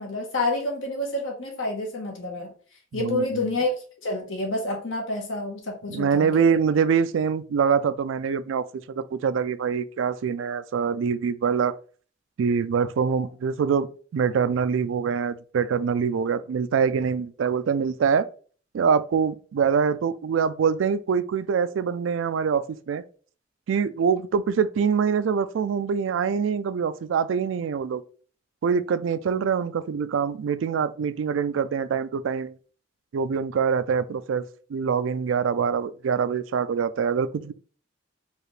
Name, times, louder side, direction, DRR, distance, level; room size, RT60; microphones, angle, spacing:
voice 1, 0.0-2.5 2.9-3.7 4.0-6.6, left 2 dB, 85° left, 1.3 m, -28 dB
voice 2, 2.9-3.5 5.9-11.7 12.4-13.9 14.1-18.3 18.7-23.0 23.7-28.0 28.6-32.5 33.1-34.4 34.7-37.5, right 6 dB, 80° right, 0.3 m, -24 dB
4.7 x 2.4 x 3.2 m
head